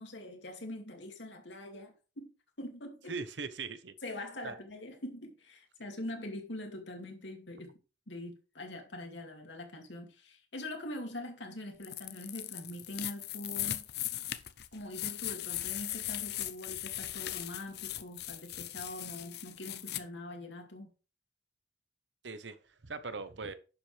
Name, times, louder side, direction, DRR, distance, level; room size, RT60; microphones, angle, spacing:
voice 1, 0.0-2.3 2.6-3.1 4.0-7.7 8.1-13.8 14.7-20.9, left 1 dB, 85° left, 2.5 m, -43 dB
voice 2, 3.1-3.9 4.4-4.6 22.2-22.6 22.8-23.5, right 4 dB, 80° right, 0.9 m, -40 dB
sound 1, 11.8-20.0, left 13 dB, 60° left, 0.7 m, -39 dB
11.0 x 7.5 x 3.4 m
head